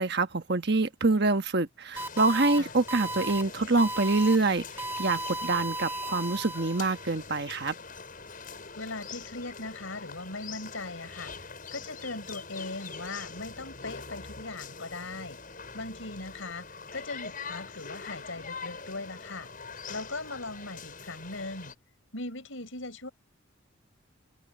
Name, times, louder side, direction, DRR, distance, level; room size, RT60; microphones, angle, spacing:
voice 1, 0.0-4.6 5.0-7.7, right 3 dB, 50° right, 1.3 m, -26 dB
sound 1, 1.9-21.7, left 5 dB, 40° left, 7.8 m, -43 dB
sound 2, 2.0-2.6 2.9-3.4 3.8-4.4 4.8-7.1, right 1 dB, 10° right, 2.0 m, -35 dB
voice 2, 8.8-15.4 15.7-16.7 16.9-21.7 22.1-23.1, left 2 dB, 70° left, 4.9 m, -39 dB
head